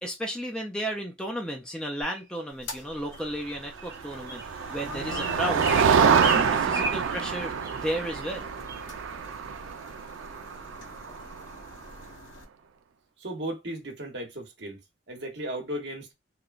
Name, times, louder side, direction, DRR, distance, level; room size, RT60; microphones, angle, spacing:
voice 1, 0.0-5.7 6.0-7.5 7.8-8.5, equal, 5° left, 0.4 m, -33 dB
sound 1, 2.0-2.2 3.1-3.2 3.8-4.0 4.3-4.5 5.1-7.3 7.6-7.8 8.2-8.4 8.7-8.8, right 2 dB, 15° right, 1.0 m, -34 dB
sound 2, 2.5-12.4, left 2 dB, 85° left, 0.9 m, -44 dB
Motor vehicle (road), 3.9-11.7, right 6 dB, 90° right, 0.4 m, -26 dB
voice 2, 13.2-14.8 15.1-16.1, right 1 dB, 60° right, 1.0 m, -35 dB
3.0 x 2.2 x 2.4 m
head